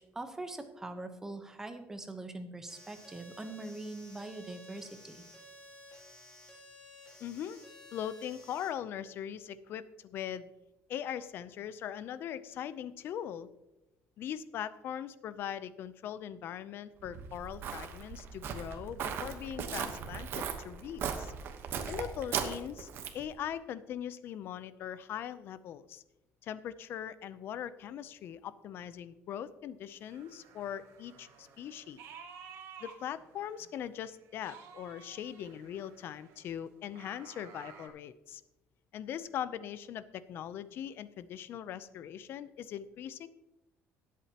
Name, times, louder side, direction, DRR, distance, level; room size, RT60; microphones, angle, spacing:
voice 1, 0.0-5.2, right 2 dB, 10° right, 7 dB, 0.9 m, -43 dB
sound 1, 2.7-8.7, left 1 dB, 15° left, 2.7 m, -54 dB
voice 2, 7.2-7.6 7.9-9.8 10.1-10.5 10.9-13.5 14.2-21.3 21.9-22.9 23.1-26.0 26.4-32.0 32.8-38.4 38.9-43.3, left 9 dB, 50° left, 15 dB, 0.5 m, -40 dB
Walk footsteps, 17.0-23.3, right 7 dB, 50° right, 1.1 m, -38 dB
sound 2, 29.9-33.8 34.1-37.9, right 6 dB, 80° right, 1.8 m, -53 dB
18.5 x 8.3 x 2.9 m, 1.0 s
cardioid pair, 170°, 5 cm